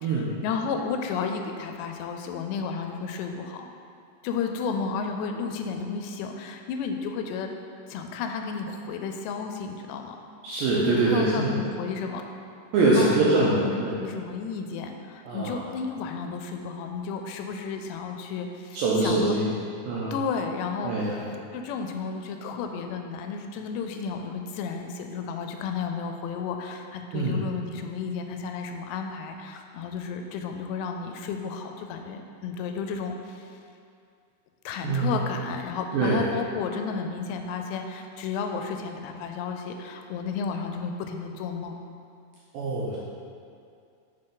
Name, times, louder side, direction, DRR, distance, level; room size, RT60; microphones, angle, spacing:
voice 1, 0.0-3.7 4.2-7.5 7.9-10.2 10.8-12.2 13.0-19.3 20.1-21.2 21.5-33.5 34.7-41.8, left 5 dB, 90° left, 5 dB, 2.8 m, -32 dB
voice 2, 10.4-11.6 12.7-14.0 15.2-15.6 18.7-19.5 19.9-20.1 20.8-21.2 27.1-27.4 34.8-35.2 35.9-36.2 42.5-43.0, right 2 dB, 85° right, -6 dB, 2.1 m, -24 dB
6.5 x 6.0 x 3.8 m, 2.4 s
omnidirectional pair, 4.9 m